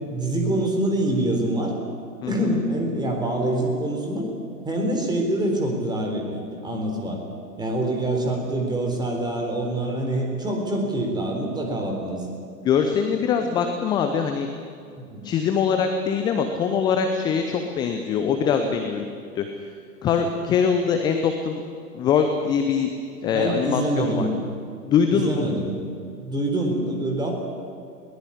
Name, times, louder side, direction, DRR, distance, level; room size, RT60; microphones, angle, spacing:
voice 1, 0.1-1.7 2.3-4.3 4.6-7.2 7.6-12.3 15.1-15.3 23.3-24.4 25.1-25.8 26.2-27.3, right 1 dB, 10° right, 2 dB, 4.0 m, -25 dB
voice 2, 12.6-14.5 15.2-19.1 19.3-19.5 20.0-21.6 21.9-22.9 23.2-24.3 24.8-25.4, left 6 dB, 10° left, 6 dB, 0.6 m, -23 dB
21.0 x 18.5 x 9.9 m, 2.4 s
figure-of-eight pair, 110°, 49 cm